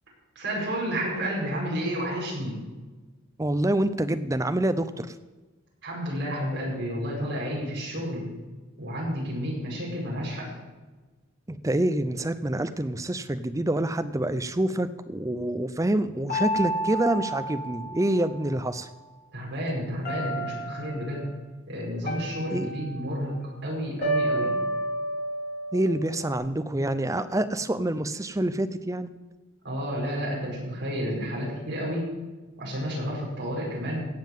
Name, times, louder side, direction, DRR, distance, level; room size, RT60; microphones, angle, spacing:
voice 1, 0.4-2.6 5.8-8.2 8.8-10.5 19.3-21.2 21.7-24.5 29.6-32.1 32.6-34.0, equal, 55° right, -4 dB, 5.2 m, -31 dB
voice 2, 3.4-5.1 11.5-18.9 22.5-22.7 25.7-29.1, right 1 dB, 15° right, 11 dB, 0.5 m, -26 dB
sound 1, 16.3-18.6 20.0-21.1 22.1-23.3 24.0-26.4, right 1 dB, 45° left, 3.6 m, -31 dB
16.5 x 5.7 x 7.4 m, 1.2 s
head